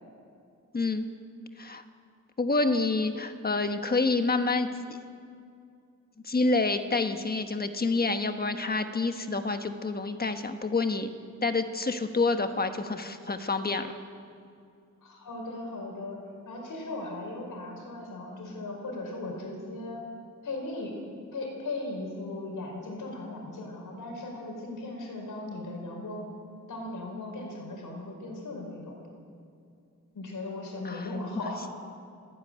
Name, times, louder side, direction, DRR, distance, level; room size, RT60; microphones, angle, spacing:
voice 1, 0.7-1.1 1.6-1.8 2.4-5.0 6.2-11.1 11.4-13.9 30.8-31.1, left 3 dB, 30° left, 7 dB, 1.3 m, -28 dB
voice 2, 15.0-16.2 16.4-20.0 20.4-21.0 21.3-26.3 26.7-29.0 30.1-31.7, left 2 dB, 80° left, 1 dB, 5.4 m, -37 dB
30.0 x 10.0 x 9.4 m, 2.4 s
wide cardioid pair, 145°, 31 cm